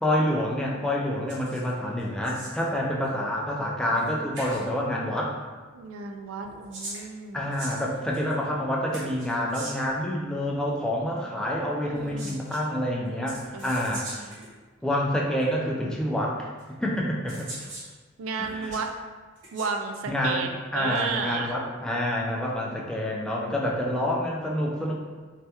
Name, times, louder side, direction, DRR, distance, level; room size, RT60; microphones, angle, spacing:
voice 1, 0.0-5.3 7.3-14.3 14.8-17.4 18.4-18.8 20.1-20.5 20.7-24.9, left 1 dB, 5° left, -3 dB, 0.3 m, -28 dB
sound 1, 1.3-1.7 2.0-2.7 4.0-4.1 4.3-4.6 6.4-8.3 8.9-9.9 11.9-12.6 13.3-14.5 15.4-15.5 16.6-16.7 17.3-17.9 18.4-18.9 19.4-19.7, right 1 dB, 65° right, 0.9 m, -41 dB
voice 2, 5.7-7.5 11.8-12.4 13.5-13.7 14.4-14.5 18.2-19.0 19.5-21.5, right 4 dB, 85° right, 4 dB, 0.3 m, -33 dB
3.3 x 2.2 x 2.8 m, 1.4 s
head